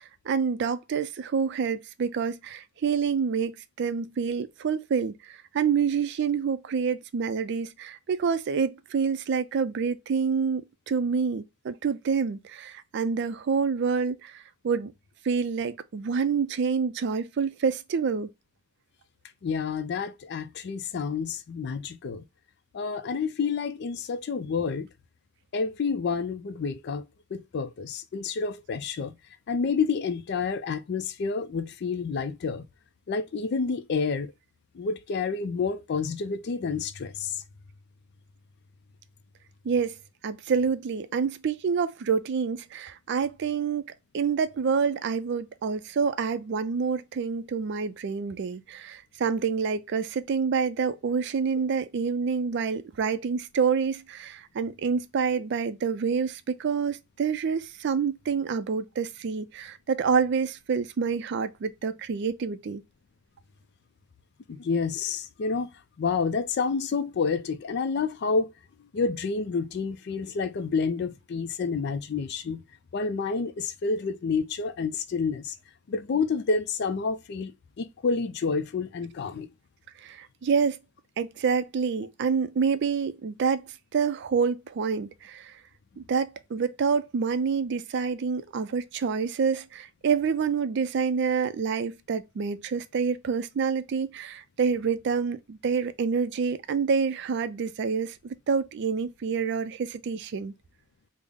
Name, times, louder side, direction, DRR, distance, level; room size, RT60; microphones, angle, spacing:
voice 1, 0.0-10.6 10.9-14.9 15.2-18.3 39.6-40.0 40.2-43.9 44.1-62.8 80.0-80.8 81.2-85.6 86.0-100.5, right 6 dB, 55° right, 0.3 m, -27 dB
voice 2, 19.4-22.2 22.7-24.9 25.5-27.1 27.3-29.2 29.5-32.7 33.1-34.3 34.7-37.4 64.5-65.7 66.0-68.5 68.9-72.6 72.9-75.5 75.9-77.5 77.8-79.5, left 5 dB, 55° left, 0.4 m, -29 dB
3.6 x 2.0 x 3.3 m
head